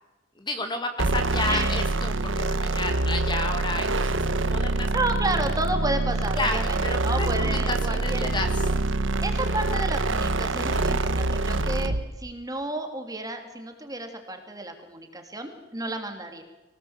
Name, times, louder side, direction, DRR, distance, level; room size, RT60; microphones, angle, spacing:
voice 1, 0.4-4.9 6.4-8.7 10.5-10.9, left 2 dB, 25° left, 6 dB, 2.1 m, -31 dB
sound 1, 1.0-12.1, right 2 dB, 80° right, 1.3 m, -25 dB
voice 2, 1.4-1.8 4.9-8.4 9.2-16.4, right 2 dB, 20° right, 5 dB, 3.0 m, -31 dB
24.0 x 18.5 x 8.2 m, 1.1 s
head